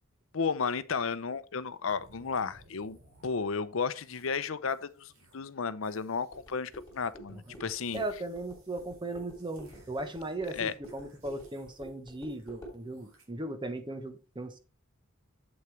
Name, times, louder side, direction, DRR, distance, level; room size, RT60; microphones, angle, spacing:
voice 1, 0.3-3.0 3.2-8.0 10.6-10.7, left 5 dB, 70° left, 0.7 m, -33 dB
sound 1, 1.9-3.6 4.0-4.4 4.7-5.5 5.8-7.6 7.9-13.2, right 2 dB, 80° right, 3.9 m, -62 dB
sound 2, 6.3-12.8, right 1 dB, 15° left, 4.9 m, -50 dB
voice 2, 7.9-14.6, right 2 dB, 20° right, 1.1 m, -37 dB
8.2 x 8.1 x 3.3 m
head